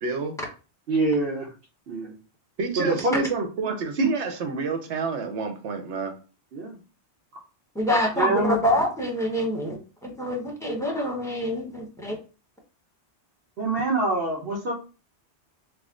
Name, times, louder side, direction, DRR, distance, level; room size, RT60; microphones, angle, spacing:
voice 1, 0.0-0.4 2.6-6.2, right 4 dB, 90° right, 5 dB, 1.1 m, -29 dB
voice 2, 0.9-1.5 1.9-2.1 2.8-3.3 3.6-4.1 6.5-6.8 8.2-8.6 13.6-14.7, right 2 dB, 60° right, -5 dB, 1.1 m, -25 dB
voice 3, 7.7-12.2, left 1 dB, 5° left, 0 dB, 0.8 m, -26 dB
3.6 x 2.1 x 3.6 m, 0.34 s
omnidirectional pair, 1.1 m